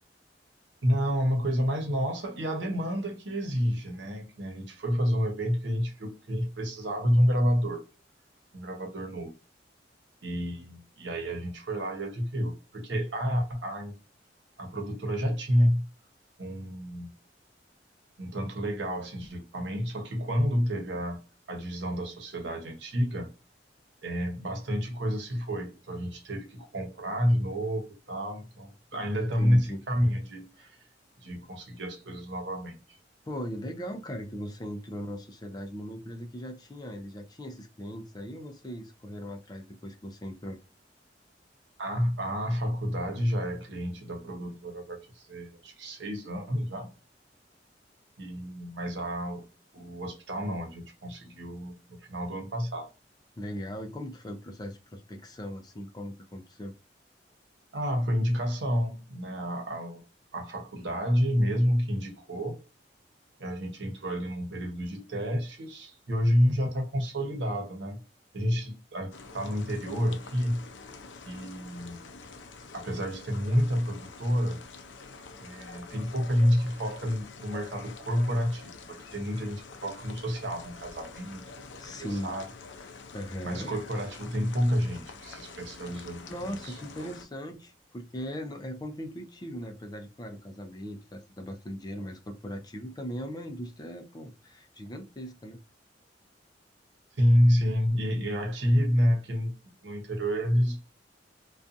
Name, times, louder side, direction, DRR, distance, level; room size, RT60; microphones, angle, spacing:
voice 1, 0.8-7.8 8.5-9.3 10.2-13.9 14.6-15.9 16.4-17.1 18.2-21.2 21.5-23.3 24.0-30.8 31.2-33.0 41.8-46.9 48.2-49.4 49.7-52.9 57.7-60.0 60.3-62.6 63.4-68.0 68.3-70.6 71.2-72.0 72.7-74.6 75.4-81.7 82.0-82.5 83.4-87.1 97.2-99.6 99.8-100.8, equal, 80° right, 0.9 m, -29 dB
voice 2, 28.9-29.8 30.6-30.7 33.3-40.6 53.4-56.7 81.7-82.3 83.1-83.7 86.3-95.6, equal, 20° left, 0.4 m, -39 dB
sound 1, 69.1-87.3, left 4 dB, 85° left, 0.4 m, -47 dB
2.6 x 2.3 x 2.4 m
head